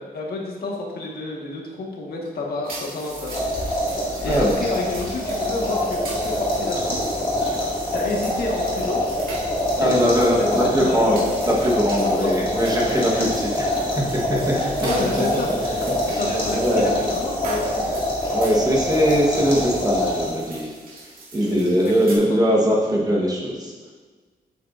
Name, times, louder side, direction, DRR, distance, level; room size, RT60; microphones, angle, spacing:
voice 1, 0.0-3.6 4.2-7.0 7.9-9.1 9.8-11.3 12.0-12.4 12.9-13.3 14.5-15.9 16.2-18.0 21.5-22.2, left 2 dB, 75° left, -1 dB, 1.4 m, -29 dB
sound 1, 2.6-22.2, right 2 dB, 65° right, 1.9 m, -40 dB
sound 2, 3.2-20.6, left 1 dB, 30° left, 2.0 m, -25 dB
voice 2, 9.8-11.2 11.5-13.7 15.8-16.2 16.6-16.8 18.3-20.7 21.3-23.7, equal, 25° right, -3 dB, 1.1 m, -21 dB
8.0 x 7.8 x 2.5 m, 1.4 s
wide cardioid pair, 175°, 16 cm